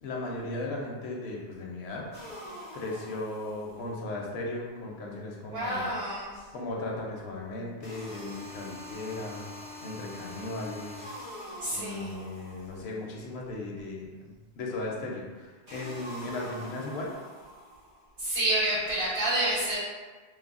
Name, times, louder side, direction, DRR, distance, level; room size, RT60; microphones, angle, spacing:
voice 1, 0.0-2.1 2.7-5.9 6.5-9.5 9.8-11.1 11.7-17.1, left 2 dB, 80° left, -2 dB, 0.8 m, -37 dB
sound 1, 2.1-4.1 7.8-13.1 15.7-18.1, left 1 dB, 55° right, 1.3 m, -44 dB
voice 2, 5.5-6.4 11.6-12.1 18.2-19.8, right 1 dB, 70° right, -12 dB, 1.6 m, -28 dB
3.3 x 2.1 x 2.4 m, 1.4 s
omnidirectional pair, 1.1 m